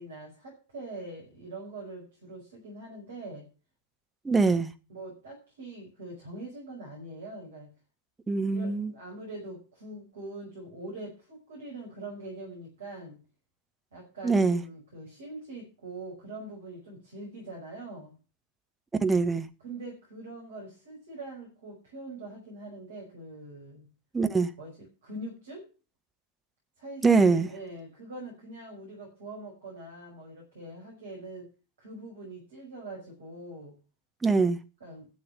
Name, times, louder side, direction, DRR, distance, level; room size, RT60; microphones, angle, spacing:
voice 1, 0.0-3.5 4.9-7.7 8.4-13.2 13.9-18.1 19.6-23.9 24.6-24.7 25.0-25.7 26.8-31.5 31.8-33.8 34.8-35.1, right 2 dB, 65° right, 5.6 m, -43 dB
voice 2, 4.2-4.7 8.3-8.9 14.2-14.6 19.0-19.5 24.1-24.5 27.0-27.5 34.2-34.6, right 4 dB, 10° right, 1.1 m, -23 dB
12.0 x 6.9 x 6.3 m
figure-of-eight pair, 90°, 0 cm